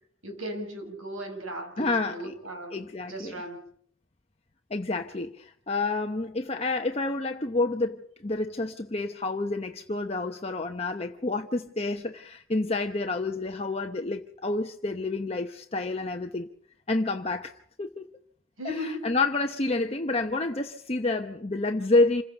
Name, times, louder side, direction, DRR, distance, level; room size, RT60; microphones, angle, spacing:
voice 1, 0.2-3.6 18.6-19.0, equal, 80° right, 6 dB, 5.6 m, -37 dB
voice 2, 1.8-2.3 2.7-3.3 4.7-16.5 16.9-18.1 19.0-22.2, left 2 dB, 30° left, 5 dB, 0.9 m, -29 dB
27.5 x 16.0 x 7.0 m, 0.64 s
head